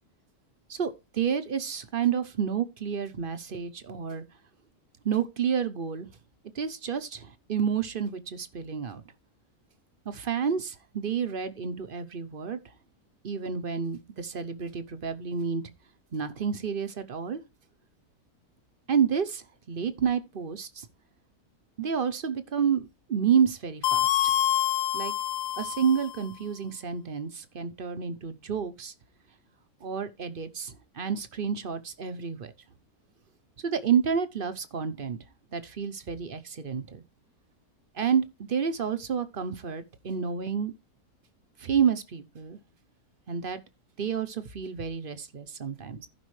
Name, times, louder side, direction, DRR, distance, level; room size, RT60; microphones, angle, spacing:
voice 1, 0.7-4.2 5.0-6.1 6.5-9.0 10.1-12.6 13.2-15.6 16.1-17.4 18.9-20.9 21.8-24.2 24.9-25.1 25.6-28.9 29.8-32.5 33.6-35.2 35.5-37.0 37.9-40.7 41.6-42.6 43.3-43.6 44.0-46.1, right 7 dB, 45° right, 0.9 m, -29 dB
sound 1, 23.8-26.2, left 11 dB, 70° left, 1.0 m, -26 dB
15.0 x 5.3 x 3.2 m
omnidirectional pair, 1.6 m